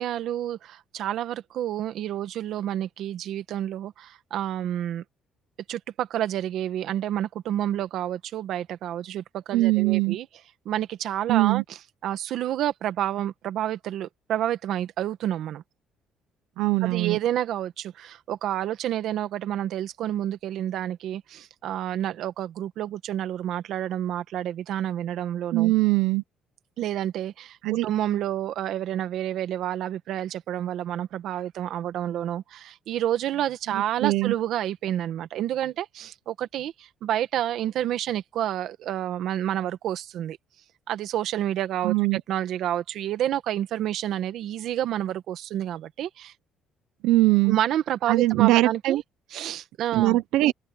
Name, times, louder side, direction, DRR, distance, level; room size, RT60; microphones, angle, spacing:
voice 1, 0.0-5.0 5.7-10.3 10.6-15.6 16.8-25.7 26.8-40.4 40.9-46.3 47.5-49.0 49.3-50.2, right 11 dB, 65° right, 1.6 m, -29 dB
voice 2, 9.5-10.2 11.3-11.6 16.6-17.2 25.5-26.2 27.6-27.9 34.0-34.3 41.8-42.2 47.0-47.6 48.1-49.0 49.9-50.5, right 18 dB, 85° right, 0.8 m, -21 dB
cardioid pair, 130°, 0 cm